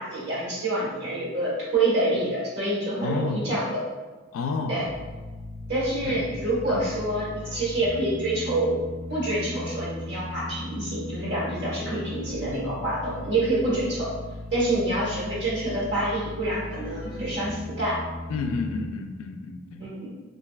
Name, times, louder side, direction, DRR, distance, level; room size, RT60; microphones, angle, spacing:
voice 1, 0.0-3.8 4.7-4.8 5.7-8.8 9.1-14.1 14.5-18.0 19.8-20.1, right 2 dB, 55° right, -6 dB, 1.1 m, -27 dB
voice 2, 3.0-3.5 4.3-4.9 6.0-6.2 6.7-6.9 18.3-19.8, left 4 dB, 70° left, 6 dB, 0.3 m, -30 dB
sound 1, 4.9-18.9, left 2 dB, 85° right, 1.4 m, -38 dB
3.2 x 2.6 x 2.2 m, 1.2 s
head